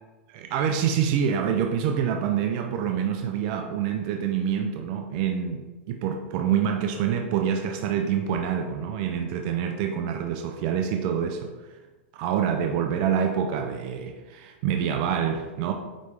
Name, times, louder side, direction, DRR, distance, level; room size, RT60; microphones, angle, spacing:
voice 1, 0.3-11.5 12.1-15.7, right 8 dB, 50° right, 4 dB, 0.5 m, -26 dB
9.2 x 3.2 x 3.4 m, 1.2 s
hypercardioid pair, 130°, 7 cm